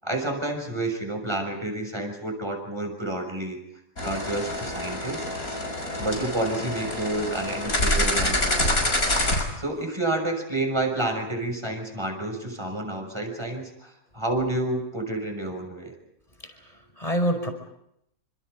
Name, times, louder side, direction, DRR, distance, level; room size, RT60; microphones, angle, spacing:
voice 1, 0.0-3.6 4.0-5.6 6.0-8.7 9.6-15.9, right 2 dB, 20° right, 5 dB, 6.2 m, -29 dB
sound 1, 4.0-9.4, left 1 dB, 80° left, 6.7 m, -26 dB
voice 2, 16.4-17.5, right 1 dB, 25° left, 6 dB, 5.3 m, -27 dB
28.5 x 27.0 x 5.2 m, 0.78 s
omnidirectional pair, 1.5 m